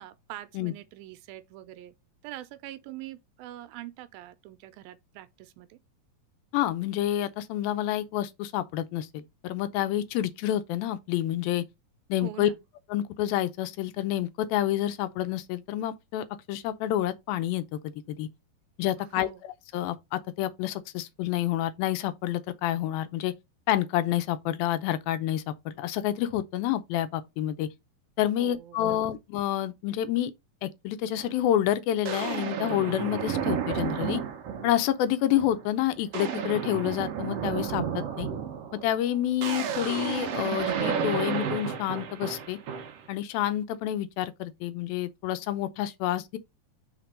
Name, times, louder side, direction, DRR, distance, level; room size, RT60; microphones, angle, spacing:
voice 1, 0.0-2.0 2.2-5.8 12.2-12.6 19.0-19.4 28.4-29.0, right 14 dB, 85° right, 2.4 m, -44 dB
voice 2, 6.5-11.6 12.1-12.5 12.9-18.3 18.8-19.3 19.7-23.3 23.7-27.7 28.2-30.3 30.6-34.2 34.6-38.3 38.8-42.6 43.1-46.4, left 12 dB, 80° left, 2.5 m, -28 dB
sound 1, 31.2-31.3 32.0-34.9 35.4-35.7 35.9-43.1, right 7 dB, 70° right, 1.5 m, -32 dB
5.9 x 3.9 x 5.1 m
omnidirectional pair, 4.2 m